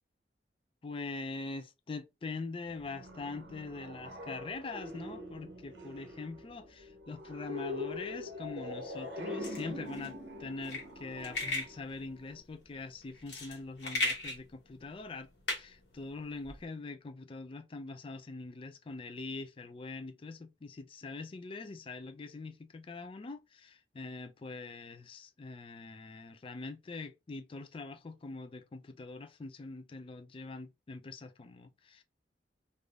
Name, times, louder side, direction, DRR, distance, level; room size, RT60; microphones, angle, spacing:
voice 1, 0.8-32.0, left 3 dB, 30° left, 0.4 m, -43 dB
sound 1, 2.7-12.4, left 1 dB, 75° right, 0.7 m, -43 dB
sound 2, 9.4-16.6, left 2 dB, 70° left, 1.3 m, -38 dB
3.4 x 2.5 x 2.4 m
head